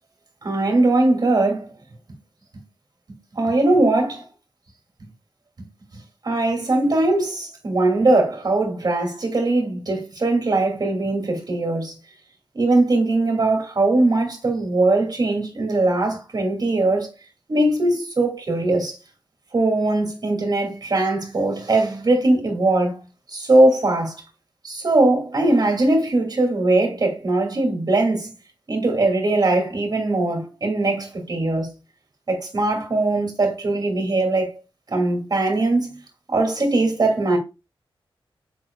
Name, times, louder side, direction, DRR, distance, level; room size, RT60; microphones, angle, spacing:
voice 1, 0.4-1.7 3.3-4.2 6.2-11.9 12.5-17.1 17.5-18.9 19.5-23.0 23.3-24.1 24.6-28.3 28.7-31.7 32.3-34.6 34.9-36.0 36.3-37.4, right 2 dB, 45° right, 2.7 m, -20 dB
7.8 x 6.1 x 2.4 m
wide cardioid pair, 150°, 10 cm